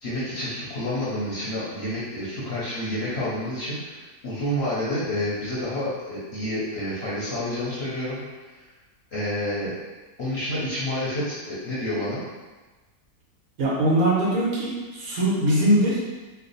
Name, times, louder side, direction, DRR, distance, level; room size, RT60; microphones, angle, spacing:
voice 1, 0.0-8.2 9.1-9.7 10.2-12.2, left 1 dB, 50° left, -9 dB, 0.9 m, -29 dB
voice 2, 13.6-16.0, right 1 dB, 65° right, -6 dB, 1.4 m, -21 dB
3.3 x 2.0 x 3.9 m, 1.3 s
omnidirectional pair, 1.7 m